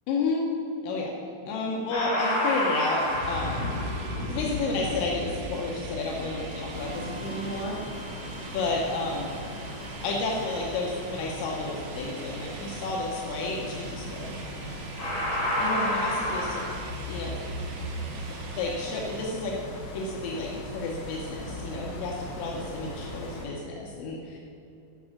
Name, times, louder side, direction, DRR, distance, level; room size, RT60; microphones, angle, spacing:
voice 1, 0.1-0.5 0.8-1.1 1.5-3.6 4.3-7.8 8.5-9.4 10.0-14.3 15.4-16.8 17.1-17.4 18.6-19.6 19.9-24.4, left 3 dB, 80° left, -2 dB, 3.2 m, -31 dB
sound 1, 1.9-9.1 14.3-14.6 15.0-16.7, left 1 dB, 25° left, 2.5 m, -31 dB
sound 2, 2.2-19.3, right 6 dB, 80° right, 3.2 m, -46 dB
sound 3, 6.7-23.5, equal, 55° left, 1.3 m, -39 dB
10.5 x 6.1 x 7.2 m, 2.7 s
omnidirectional pair, 5.5 m